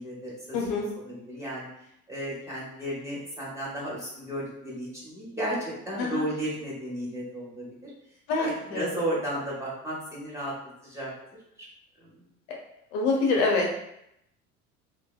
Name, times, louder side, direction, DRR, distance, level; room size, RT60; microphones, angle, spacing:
voice 1, 0.0-1.7 2.1-7.9 8.4-10.5 10.8-11.1 11.6-11.7 12.0-12.1, right 1 dB, 5° right, -6 dB, 1.0 m, -34 dB
voice 2, 0.5-0.9 6.0-6.2 8.3-8.9 12.5-12.6 12.9-13.7, left 3 dB, 60° left, 0 dB, 0.6 m, -26 dB
2.6 x 2.0 x 2.3 m, 0.78 s
hypercardioid pair, 65°, 40 cm